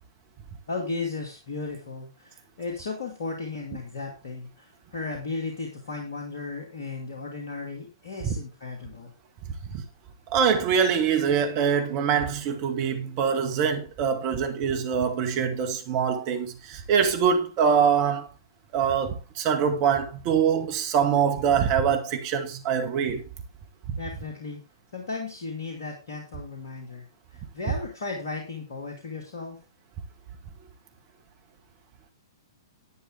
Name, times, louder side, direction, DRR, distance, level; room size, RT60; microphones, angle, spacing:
voice 1, 0.7-9.1 24.0-24.6 24.9-27.1 27.3-29.6, left 3 dB, 55° left, 2.4 m, -35 dB
voice 2, 10.3-18.3 18.7-23.2 23.9-24.0, right 7 dB, 35° right, 1.9 m, -24 dB
11.0 x 8.8 x 3.6 m
figure-of-eight pair, 115°, 2 cm